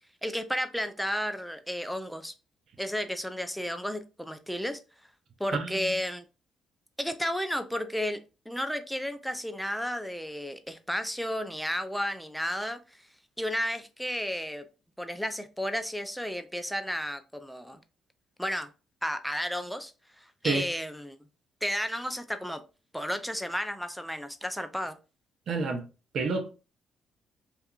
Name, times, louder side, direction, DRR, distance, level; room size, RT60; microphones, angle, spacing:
voice 1, 0.2-2.3 2.8-4.8 5.4-6.2 7.0-8.2 8.5-13.0 13.4-14.7 15.0-17.8 18.4-18.7 19.0-19.9 20.2-21.2 21.6-22.6 22.9-25.0, equal, ahead, 0.4 m, -32 dB
voice 2, 5.5-5.9 20.4-20.6 25.5-25.8 26.1-26.5, right 4 dB, 60° right, 0.6 m, -29 dB
2.7 x 2.3 x 2.3 m
cardioid pair, 90°, 0 cm